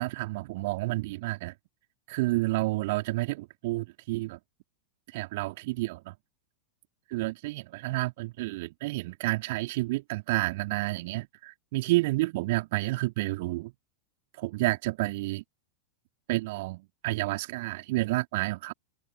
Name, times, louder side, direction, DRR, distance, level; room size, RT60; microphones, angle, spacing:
voice 1, 0.0-1.5 2.1-4.4 5.1-6.1 7.1-13.7 14.4-15.4 16.3-18.7, right 21 dB, 50° right, 4.2 m, -30 dB
open air
figure-of-eight pair, 90°, 0 cm